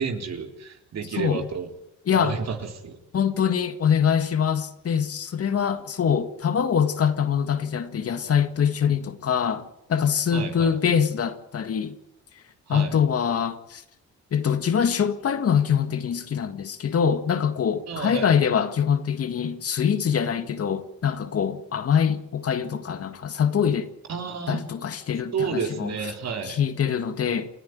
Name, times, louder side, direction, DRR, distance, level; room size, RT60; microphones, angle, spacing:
voice 1, 0.0-1.7 2.1-3.0 10.3-10.7 12.7-12.9 17.9-18.3 24.1-24.7 25.3-26.6, right 5 dB, 60° right, 3.7 m, -31 dB
voice 2, 1.1-1.5 2.1-2.4 3.1-12.0 12.7-13.8 14.3-23.9 24.5-25.9 26.4-27.5, left 7 dB, 50° left, 1.9 m, -24 dB
29.0 x 10.5 x 9.5 m
cardioid pair, 90°, 30 cm